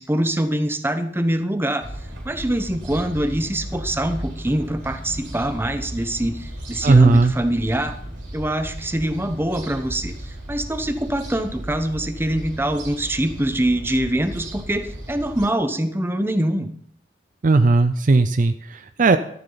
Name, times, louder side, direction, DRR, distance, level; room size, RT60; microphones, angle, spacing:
voice 1, 0.0-1.9 2.2-7.9 8.3-16.7, right 1 dB, 15° right, 9 dB, 0.9 m, -24 dB
sound 1, 1.8-15.5, right 1 dB, 75° right, 4.1 m, -35 dB
voice 2, 6.8-7.3 17.4-19.2, right 3 dB, 45° right, 10 dB, 0.5 m, -16 dB
13.0 x 11.0 x 4.0 m, 0.66 s
head